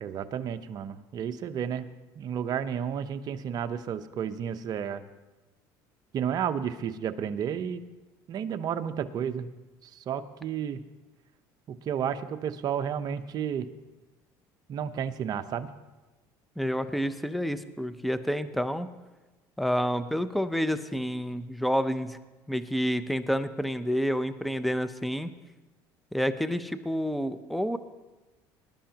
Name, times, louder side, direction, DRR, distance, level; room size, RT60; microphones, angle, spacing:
voice 1, 0.0-1.9 2.2-5.0 6.1-7.8 8.3-9.5 10.1-10.8 11.7-13.7 14.7-15.7, right 8 dB, 45° right, 9 dB, 0.8 m, -32 dB
voice 2, 16.6-18.9 19.6-22.2 22.5-25.3 26.1-27.8, equal, ahead, 11 dB, 0.6 m, -29 dB
21.0 x 11.0 x 2.9 m, 1.1 s
supercardioid pair, 105°, 9 cm